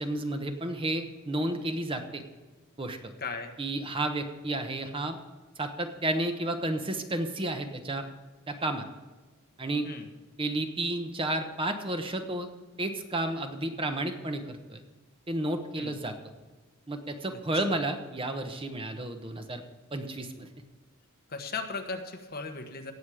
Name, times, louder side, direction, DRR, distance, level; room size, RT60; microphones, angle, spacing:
voice 1, 0.0-2.2 2.8-3.1 3.6-5.2 5.6-8.0 8.5-8.8 9.6-9.9 10.4-12.5 12.8-14.8 15.3-16.1 16.9-19.6 19.9-20.5, right 1 dB, 25° right, 6 dB, 1.0 m, -32 dB
voice 2, 3.2-3.5 9.8-10.1 15.8-16.0 17.3-17.8 21.3-22.9, left 4 dB, 45° left, 5 dB, 1.3 m, -37 dB
17.5 x 7.3 x 4.9 m, 1.3 s
head